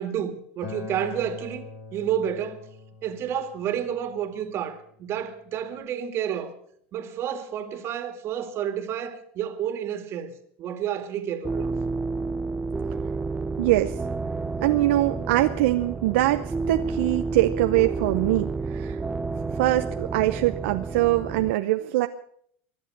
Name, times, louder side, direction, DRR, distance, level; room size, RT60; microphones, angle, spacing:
voice 1, 0.0-2.7 3.0-6.5 6.9-10.3 10.6-11.7, right 9 dB, 40° right, 2.2 m, -30 dB
Acoustic guitar, 0.6-5.8, left 5 dB, 60° left, 4.3 m, -43 dB
sound 1, 11.4-21.5, right 4 dB, 15° right, 0.6 m, -30 dB
voice 2, 13.6-14.0 14.6-19.0 19.6-22.1, right 16 dB, 75° right, 0.8 m, -23 dB
24.0 x 8.2 x 6.7 m
supercardioid pair, 115°, 6 cm